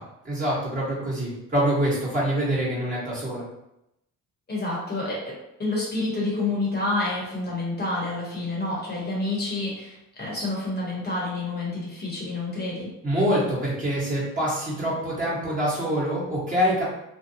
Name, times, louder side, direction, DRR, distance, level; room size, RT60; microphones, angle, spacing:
voice 1, 0.2-3.4 13.0-16.8, equal, 25° right, -8 dB, 1.3 m, -25 dB
voice 2, 4.5-5.3 5.6-12.9, left 2 dB, 35° left, -5 dB, 1.0 m, -28 dB
2.7 x 2.0 x 2.7 m, 0.85 s
cardioid pair, 90°, 30 cm